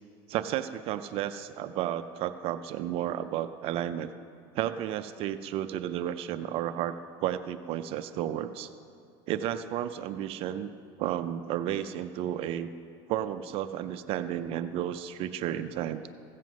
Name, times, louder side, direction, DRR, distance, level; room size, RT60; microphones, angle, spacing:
voice 1, 0.3-4.1 4.5-6.9 7.2-8.7 9.3-10.7 11.0-12.7 13.1-16.0, right 11 dB, 45° right, 11 dB, 0.4 m, -32 dB
15.5 x 7.6 x 6.2 m, 2.6 s
supercardioid pair, 140°, 13 cm